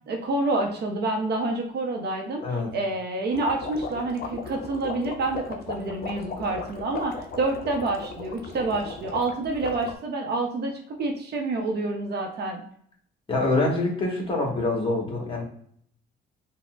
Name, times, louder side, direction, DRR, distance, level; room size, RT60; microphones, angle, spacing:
voice 1, 0.1-2.4 2.7-10.7 11.0-12.6, right 2 dB, 55° right, 2 dB, 0.6 m, -28 dB
voice 2, 2.4-2.7 13.3-15.4, left 2 dB, 25° left, -3 dB, 1.2 m, -25 dB
sound 1, 3.3-9.9, left 4 dB, 50° left, 0.5 m, -37 dB
4.1 x 2.1 x 2.3 m, 0.64 s
cardioid pair, 90°, 20 cm